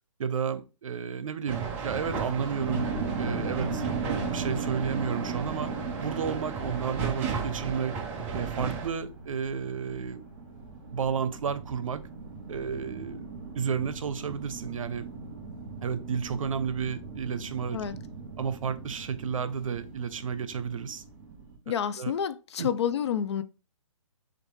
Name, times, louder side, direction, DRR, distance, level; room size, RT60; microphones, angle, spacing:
voice 1, 0.2-2.9 3.2-3.8 4.3-5.7 6.0-8.0 8.3-10.3 10.9-12.0 12.5-13.3 13.5-15.1 15.8-17.8 18.4-21.0 21.7-22.1 22.6-22.7, right 6 dB, 75° right, 0.7 m, -32 dB
sound 1, 1.5-8.9, right 5 dB, 10° right, 0.3 m, -34 dB
sound 2, 2.6-21.6, right 4 dB, 40° right, 2.6 m, -38 dB
voice 2, 21.7-23.4, left 8 dB, 55° left, 0.4 m, -29 dB
6.5 x 2.5 x 3.1 m
hypercardioid pair, 155°, 17 cm